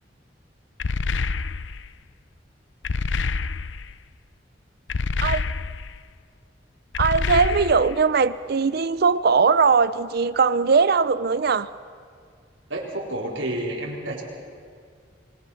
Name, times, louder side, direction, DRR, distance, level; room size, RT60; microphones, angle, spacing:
sound 1, 0.8-1.9 2.8-3.9 4.9-6.0 6.9-8.0, left 4 dB, 75° left, 0.6 m, -27 dB
voice 1, 7.0-11.7, right 5 dB, 55° right, 15 dB, 0.6 m, -20 dB
voice 2, 12.7-14.2, right 1 dB, 80° right, -3 dB, 4.2 m, -29 dB
28.0 x 21.0 x 5.7 m, 2.2 s
head